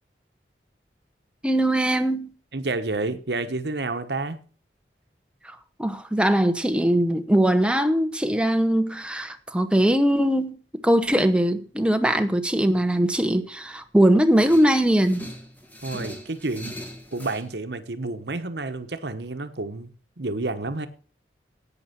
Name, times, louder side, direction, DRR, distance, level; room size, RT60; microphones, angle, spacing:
voice 1, 1.4-2.3 5.4-10.6 10.8-15.3, right 1 dB, 5° right, 1.0 m, -21 dB
voice 2, 2.5-4.4 15.8-16.8 17.1-20.9, right 2 dB, 70° right, 1.2 m, -30 dB
sound 1, 14.4-17.4, equal, 10° left, 1.7 m, -40 dB
10.5 x 9.0 x 5.9 m
head